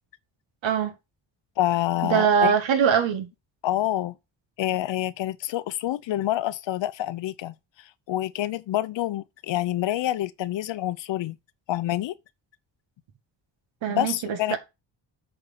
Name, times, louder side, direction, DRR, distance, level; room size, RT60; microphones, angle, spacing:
voice 1, 0.6-0.9 2.0-3.3 13.8-14.6, right 7 dB, 85° right, 2.1 m, -22 dB
voice 2, 1.6-2.5 3.6-4.1 4.6-11.4 11.7-12.1 13.9-14.6, left 14 dB, 75° left, 0.8 m, -27 dB
8.0 x 4.5 x 5.6 m
cardioid pair, 85°, 44 cm